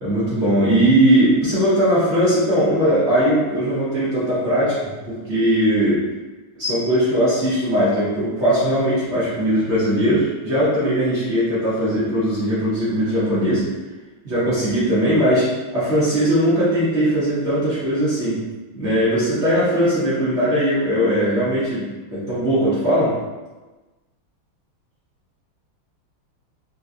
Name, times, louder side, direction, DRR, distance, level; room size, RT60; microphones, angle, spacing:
voice 1, 0.0-6.0 6.6-13.6 14.2-18.4 18.7-21.8 22.1-23.1, equal, 50° right, -11 dB, 0.8 m, -19 dB
3.8 x 2.2 x 2.5 m, 1.2 s
omnidirectional pair, 2.3 m